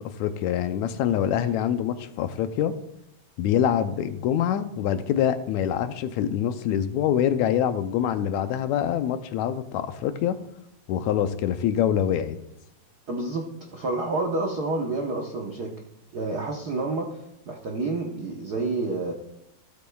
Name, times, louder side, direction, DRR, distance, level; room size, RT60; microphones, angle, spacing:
voice 1, 0.0-2.7 3.4-10.4 10.9-12.4, left 10 dB, 80° left, 10 dB, 1.9 m, -25 dB
voice 2, 13.1-13.5 13.7-15.7 16.1-19.1, right 3 dB, 85° right, 0 dB, 0.8 m, -29 dB
15.5 x 8.3 x 2.3 m, 0.79 s
omnidirectional pair, 3.4 m